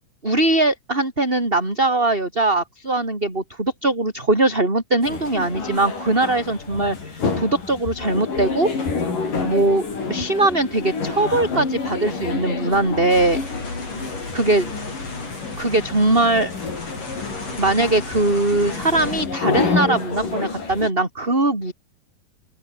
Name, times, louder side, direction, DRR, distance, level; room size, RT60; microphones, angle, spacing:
voice 1, 0.2-8.7 9.4-13.4 14.3-14.7 15.6-16.5 17.6-21.7, right 2 dB, 15° right, 6.0 m, -21 dB
sound 1, 5.0-20.9, left 4 dB, 55° left, 7.6 m, -28 dB
sound 2, 13.1-19.3, left 3 dB, 40° left, 8.7 m, -34 dB
open air
omnidirectional pair, 4.5 m